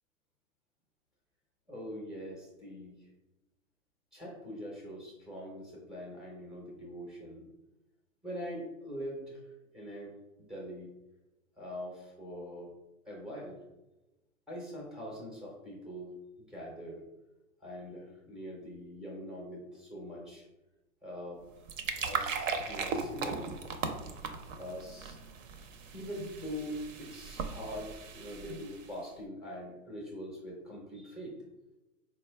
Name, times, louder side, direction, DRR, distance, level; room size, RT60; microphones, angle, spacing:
voice 1, 1.7-3.1 4.1-7.4 8.2-9.5 9.7-10.1 10.4-10.9 11.6-12.7 13.0-13.6 14.5-16.1 16.5-17.0 17.6-20.4 21.0-21.4 22.0-23.5 24.0-24.2 24.6-25.2 25.9-31.4, equal, ahead, -3 dB, 0.4 m, -43 dB
sound 1, 21.4-29.0, right 5 dB, 65° right, 0.6 m, -38 dB
4.1 x 2.2 x 3.2 m, 1.0 s
hypercardioid pair, 120°, 43 cm